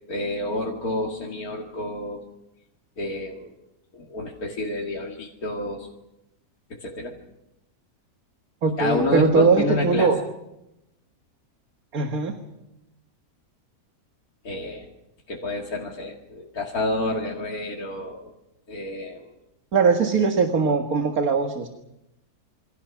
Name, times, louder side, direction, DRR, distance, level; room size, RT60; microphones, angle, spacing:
voice 1, 0.1-2.2 3.0-3.5 3.9-5.9 6.8-7.1 8.8-10.1 14.4-14.9 15.3-18.3 18.7-19.3, left 2 dB, 70° left, -1 dB, 2.8 m, -29 dB
voice 2, 8.6-10.2 11.9-12.3 19.7-21.7, right 5 dB, 70° right, 4 dB, 2.2 m, -21 dB
28.0 x 24.5 x 6.1 m, 0.91 s
omnidirectional pair, 1.6 m